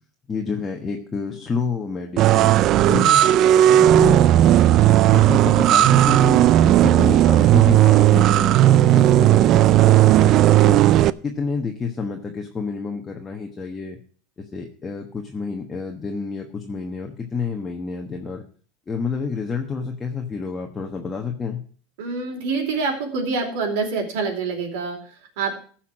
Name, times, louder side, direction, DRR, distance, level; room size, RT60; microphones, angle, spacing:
voice 1, 0.3-3.2 3.6-4.2 5.1-6.5 6.8-10.8 11.2-14.0 14.5-18.4 18.9-21.6, left 5 dB, 15° left, 2 dB, 1.2 m, -29 dB
sound 1, 2.2-11.1, right 12 dB, 40° right, 0.4 m, -14 dB
voice 2, 22.0-25.5, right 4 dB, 70° right, 3 dB, 4.2 m, -26 dB
15.0 x 5.9 x 6.2 m, 0.43 s
supercardioid pair, 155°, 0 cm